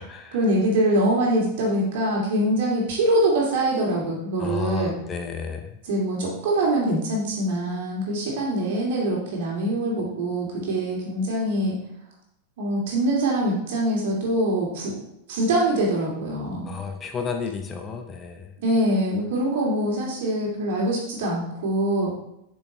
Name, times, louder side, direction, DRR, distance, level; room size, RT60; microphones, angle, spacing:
voice 1, 0.3-4.9 5.8-11.8 12.6-14.9 15.3-16.8 18.6-22.1, right 1 dB, 55° right, -3 dB, 2.6 m, -24 dB
voice 2, 4.4-5.8 16.6-18.5, left 6 dB, 25° left, 5 dB, 0.7 m, -32 dB
8.1 x 6.3 x 3.2 m, 0.80 s
figure-of-eight pair, 90°, 0 cm